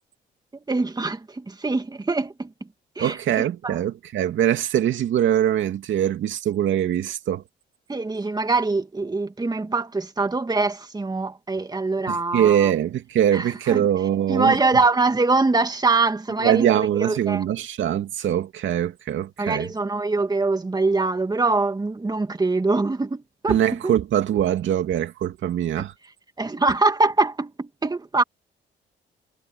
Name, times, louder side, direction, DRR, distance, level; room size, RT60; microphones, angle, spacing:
voice 1, 0.7-2.5 3.0-3.2 3.6-3.8 7.9-12.7 13.3-13.9 14.3-17.4 19.4-23.6 23.8-23.9 26.4-28.2, right 3 dB, 20° right, 2.4 m, -23 dB
voice 2, 3.0-7.4 12.1-14.6 16.4-19.7 23.5-25.9, right 10 dB, 75° right, 2.5 m, -22 dB
cardioid pair, 90°, 20 cm